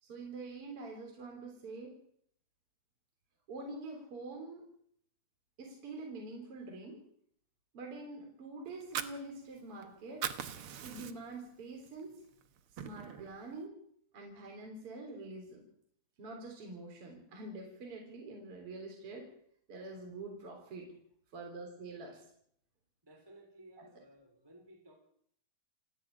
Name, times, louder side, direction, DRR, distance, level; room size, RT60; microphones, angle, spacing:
voice 1, 0.0-2.0 3.5-4.6 5.6-7.0 7.7-10.3 10.8-12.1 12.8-13.8 14.1-15.6 16.2-19.3 19.7-20.9 21.3-22.2 23.8-23.9, right 3 dB, 35° right, 1 dB, 4.4 m, -45 dB
Fire, 8.7-9.8 10.1-11.4 11.9-12.0 12.4-13.4, right 9 dB, 85° right, 1.2 m, -40 dB
voice 2, 23.0-24.9, right 1 dB, 5° right, 2 dB, 3.2 m, -58 dB
29.5 x 10.0 x 8.8 m, 0.66 s
omnidirectional pair, 4.3 m